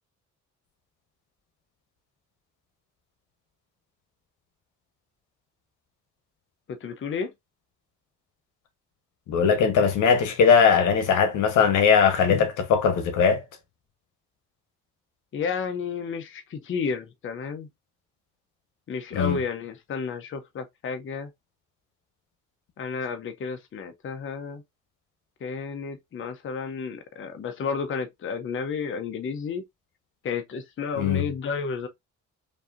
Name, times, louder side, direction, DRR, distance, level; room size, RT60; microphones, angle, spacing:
voice 1, 6.8-7.3 15.3-17.7 18.9-21.3 22.8-24.6 25.4-29.6 30.2-31.9, left 5 dB, 40° left, 0.7 m, -31 dB
voice 2, 9.3-13.4 19.1-19.4 31.0-31.2, left 6 dB, 85° left, 1.1 m, -20 dB
5.2 x 2.7 x 2.5 m
cardioid pair, 90°, 30 cm